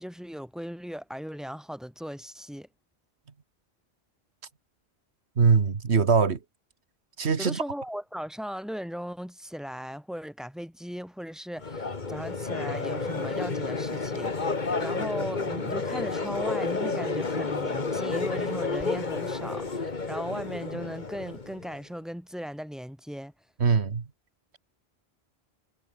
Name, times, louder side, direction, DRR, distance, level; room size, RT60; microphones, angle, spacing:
voice 1, 0.0-2.7 7.4-23.3, equal, ahead, 5.2 m, -38 dB
voice 2, 5.4-6.4 7.2-7.6 23.6-24.0, right 5 dB, 90° right, 1.9 m, -22 dB
Crowd, 11.6-21.8, left 4 dB, 45° left, 1.8 m, -31 dB
omnidirectional pair, 1.1 m